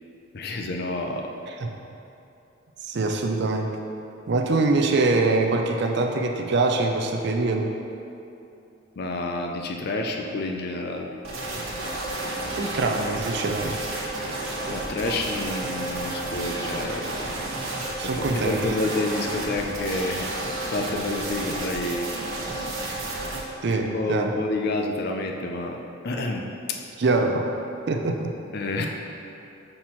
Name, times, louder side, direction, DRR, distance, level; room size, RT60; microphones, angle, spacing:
voice 1, 0.3-1.3 9.0-11.1 14.7-17.1 18.0-20.3 20.7-22.1 23.7-25.8 26.0-26.8 28.5-28.9, left 2 dB, 50° left, 2 dB, 0.4 m, -29 dB
voice 2, 2.8-3.8 4.3-7.7 12.6-13.8 18.0-18.7 23.6-24.3 27.0-27.5 27.9-28.4, right 3 dB, 50° right, 3 dB, 0.4 m, -24 dB
sound 1, 11.2-23.4, right 2 dB, 75° right, 1.1 m, -31 dB
5.9 x 4.4 x 4.3 m, 2.8 s
head